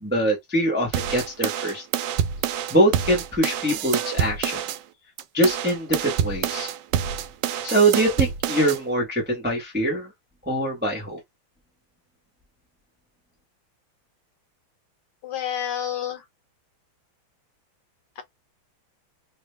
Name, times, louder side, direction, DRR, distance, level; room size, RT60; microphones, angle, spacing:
voice 1, 0.0-1.8 2.7-4.6 5.3-6.7 7.6-10.1 10.5-11.2, right 1 dB, 10° right, 0.7 m, -23 dB
sound 1, 0.9-4.8 5.2-8.8, right 9 dB, 75° right, 1.1 m, -27 dB
voice 2, 15.2-16.2 18.2-18.3, left 10 dB, 65° left, 1.3 m, -29 dB
3.2 x 2.6 x 3.3 m
omnidirectional pair, 2.2 m